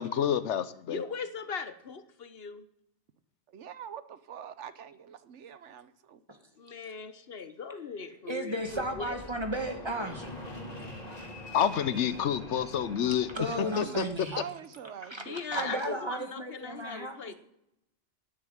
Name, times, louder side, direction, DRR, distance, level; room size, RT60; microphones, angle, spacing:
voice 1, 0.0-1.0 11.5-13.3 13.6-14.1, left 9 dB, 80° left, 1.1 m, -28 dB
voice 2, 0.9-2.7 6.6-9.2 15.2-17.3, left 5 dB, 60° left, 1.1 m, -39 dB
voice 3, 3.5-6.2 10.6-11.5 13.7-14.0 14.3-15.7, right 8 dB, 85° right, 1.2 m, -45 dB
voice 4, 8.3-10.3 10.8-10.9 13.1-14.4 15.0-17.3, right 1 dB, 25° right, 1.7 m, -34 dB
Fixed-wing aircraft airplane, 8.6-14.2, left 1 dB, 35° left, 2.3 m, -44 dB
10.0 x 9.8 x 8.8 m
omnidirectional pair, 1.2 m